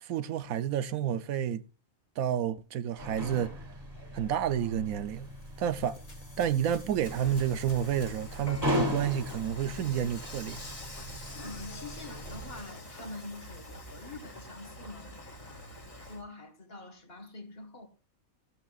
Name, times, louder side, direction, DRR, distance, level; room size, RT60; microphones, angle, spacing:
voice 1, 0.0-1.6 2.2-3.5 4.1-5.3 5.6-6.0 6.4-10.6, right 9 dB, 80° right, 1.2 m, -30 dB
sound 1, 3.0-12.6, equal, 20° right, 2.6 m, -38 dB
sound 2, 4.8-14.8, left 2 dB, 75° left, 4.8 m, -58 dB
Dishes pots and pans / Frying (food), 7.0-16.2, equal, 25° left, 1.7 m, -45 dB
voice 2, 11.1-17.9, left 2 dB, 45° left, 1.8 m, -46 dB
16.0 x 12.0 x 2.4 m
omnidirectional pair, 1.5 m